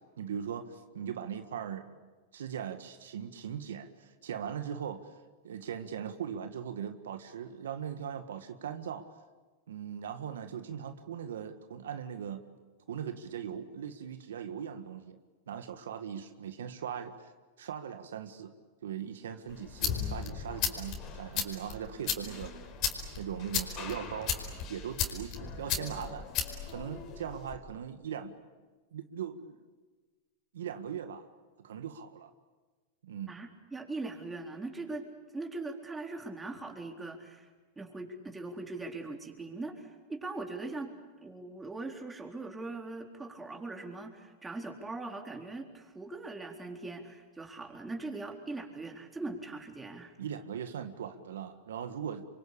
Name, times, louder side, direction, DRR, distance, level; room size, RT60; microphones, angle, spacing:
voice 1, 0.0-1.9 2.3-5.1 5.4-9.1 9.7-12.4 12.9-15.2 15.5-17.3 17.6-18.5 18.8-22.5 23.2-24.3 24.7-26.3 26.7-28.5 28.9-29.6 30.5-31.3 31.6-32.3 33.0-33.4 50.2-52.2, right 8 dB, 85° right, 8 dB, 1.7 m, -39 dB
sound 1, 19.5-27.6, left 7 dB, 45° left, 4.9 m, -36 dB
voice 2, 33.3-35.1 35.3-37.5 37.8-40.9 41.2-50.1, right 3 dB, 10° right, 2 dB, 4.1 m, -41 dB
28.0 x 24.5 x 8.6 m, 1.3 s
hypercardioid pair, 120°, 0 cm